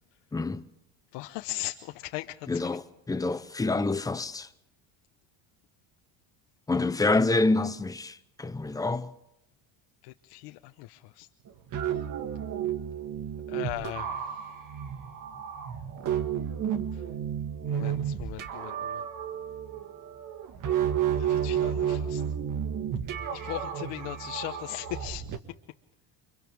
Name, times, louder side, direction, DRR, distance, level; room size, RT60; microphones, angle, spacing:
voice 1, 0.3-0.6 2.5-4.5 6.7-9.1 13.5-13.6, left 3 dB, 10° left, 0.8 m, -27 dB
voice 2, 1.1-2.5 10.0-11.3 13.5-14.5 16.9-17.0 17.6-19.0 21.2-22.2 23.3-25.3, left 17 dB, 85° left, 1.1 m, -38 dB
sound 1, 11.5-25.4, right 9 dB, 45° right, 1.7 m, -32 dB
29.5 x 25.0 x 3.5 m
cardioid pair, 145°, 42 cm